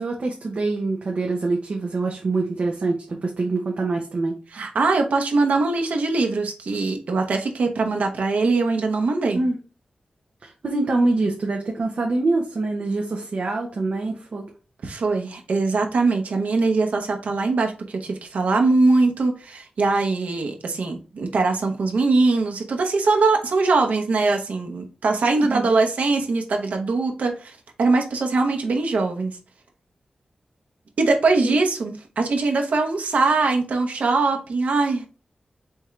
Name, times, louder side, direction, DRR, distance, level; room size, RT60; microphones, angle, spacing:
voice 1, 0.0-4.4 9.3-9.6 10.4-14.4 25.4-25.7 31.4-31.6, right 3 dB, 65° right, 0 dB, 0.9 m, -25 dB
voice 2, 4.5-9.4 14.8-29.4 31.0-35.1, right 3 dB, 90° right, 3 dB, 1.0 m, -22 dB
4.6 x 3.6 x 3.2 m, 0.35 s
wide cardioid pair, 90°, 2 cm